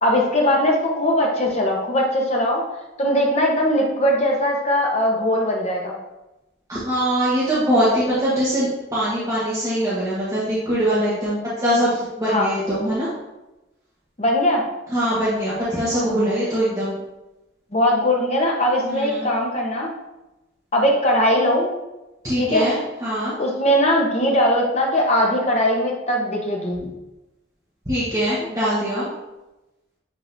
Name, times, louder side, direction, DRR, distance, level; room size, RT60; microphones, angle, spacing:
voice 1, 0.0-2.6 3.0-5.9 12.3-12.5 14.2-14.6 17.7-19.9 20.7-21.7 22.4-22.7 23.4-26.9, equal, 35° left, -1 dB, 1.0 m, -20 dB
voice 2, 6.7-13.1 14.9-16.9 18.8-19.3 22.2-22.8 23.0-23.3 27.9-29.0, equal, 15° right, -10 dB, 1.3 m, -22 dB
9.0 x 3.8 x 2.7 m, 1.0 s
head